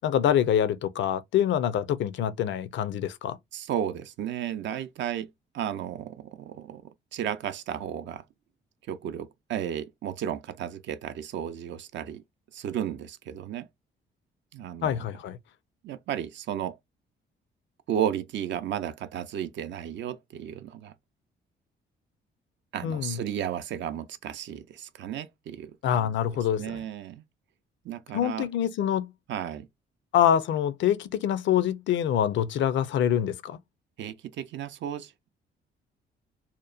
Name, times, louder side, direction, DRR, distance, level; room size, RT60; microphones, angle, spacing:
voice 1, 0.0-3.4 14.8-15.4 22.8-23.2 25.8-26.8 28.1-29.1 30.1-33.6, left 10 dB, 70° left, 0.4 m, -25 dB
voice 2, 3.5-6.8 7.1-8.2 8.9-12.2 12.5-13.7 14.5-15.0 15.8-16.8 17.9-20.9 22.7-26.1 26.6-27.2 27.8-28.5 29.3-29.7 34.0-35.3, right 10 dB, 65° right, 0.5 m, -33 dB
2.8 x 2.1 x 2.3 m
cardioid pair, 90°, 20 cm